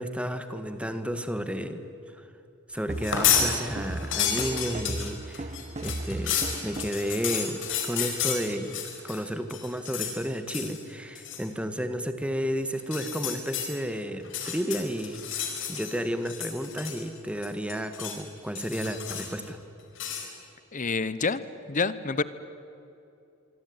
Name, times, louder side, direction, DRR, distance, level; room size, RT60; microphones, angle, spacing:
voice 1, 0.0-1.8 2.1-2.3 2.7-5.5 5.8-19.6, equal, 5° right, 9 dB, 1.6 m, -32 dB
sound 1, 2.9-3.5 3.8-9.2 9.5-10.2 10.5-10.8 11.2-11.5 12.8-13.7 14.2-16.0 16.3-17.2 17.4-18.2 18.6-19.4 20.0-20.3, left 8 dB, 65° left, 4.9 m, -30 dB
sound 2, 2.9-7.1, right 1 dB, 30° right, 0.9 m, -36 dB
voice 2, 20.7-21.4 21.7-22.2, left 4 dB, 40° left, 15 dB, 0.9 m, -27 dB
25.5 x 24.0 x 9.6 m, 2.8 s
head